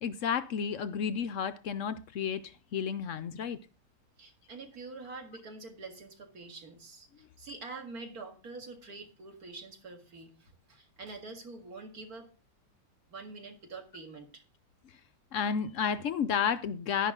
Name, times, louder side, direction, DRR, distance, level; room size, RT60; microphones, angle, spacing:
voice 1, 0.0-3.6 15.3-17.1, left 7 dB, 75° left, 0.7 m, -32 dB
voice 2, 4.2-12.3 13.1-14.4, right 3 dB, 55° right, 2.3 m, -46 dB
11.5 x 10.5 x 3.7 m
omnidirectional pair, 2.0 m